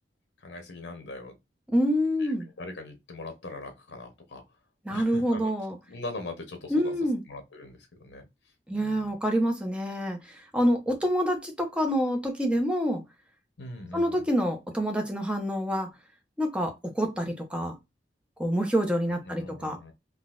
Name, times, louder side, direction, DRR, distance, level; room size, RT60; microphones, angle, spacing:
voice 1, 0.4-1.4 2.2-4.4 4.9-5.5 5.9-6.9 7.3-8.3 8.7-9.1 13.6-14.3 19.3-19.9, left 2 dB, 70° left, 0.9 m, -41 dB
voice 2, 1.7-2.5 4.8-5.8 6.7-7.2 8.7-13.0 13.9-15.9 16.4-17.7 18.4-19.8, equal, 5° right, 0.8 m, -27 dB
3.8 x 2.4 x 2.4 m
head